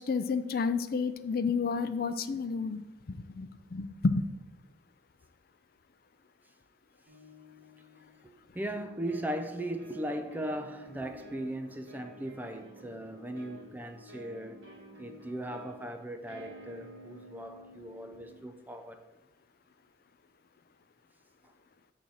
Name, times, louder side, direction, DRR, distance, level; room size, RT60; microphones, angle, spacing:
voice 1, 0.1-2.8 3.1-4.2, left 4 dB, 50° left, 0.4 m, -30 dB
sound 1, 7.1-8.2 8.8-18.4, left 1 dB, 70° right, 2.2 m, -52 dB
voice 2, 8.2-14.6 15.0-19.0, right 1 dB, 10° right, 0.4 m, -38 dB
7.2 x 3.9 x 6.3 m
head